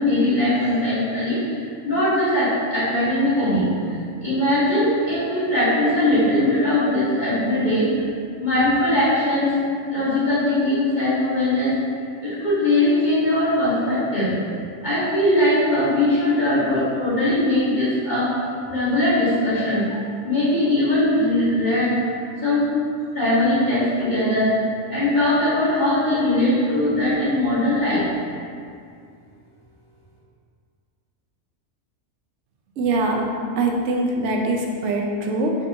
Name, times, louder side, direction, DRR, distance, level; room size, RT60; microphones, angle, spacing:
voice 1, 0.0-7.9 8.4-9.5 9.9-11.7 12.2-14.3 14.8-18.3 18.7-20.0 20.2-22.1 22.4-22.6 23.1-24.5 24.9-28.0, left 1 dB, 40° left, -12 dB, 1.1 m, -20 dB
voice 2, 32.8-33.2 33.6-35.5, right 2 dB, 70° right, 0 dB, 0.9 m, -23 dB
6.2 x 2.6 x 2.7 m, 2.3 s
omnidirectional pair, 1.4 m